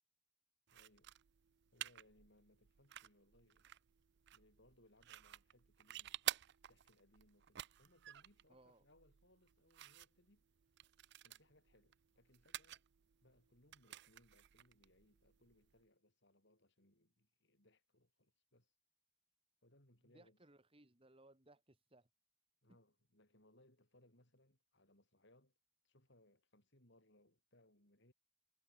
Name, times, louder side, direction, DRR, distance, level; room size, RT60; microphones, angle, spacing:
voice 1, 0.7-1.1 1.7-3.7 4.3-6.2 6.7-10.5 11.2-12.8 13.2-18.7 19.6-20.4 22.6-25.5 25.8-28.1, left 1 dB, 55° left, 6.4 m, -71 dB
sound 1, 0.7-15.8, right 13 dB, 50° right, 0.5 m, -51 dB
voice 2, 8.5-8.8 20.0-22.1 22.7-22.8, right 1 dB, 25° right, 2.0 m, -66 dB
head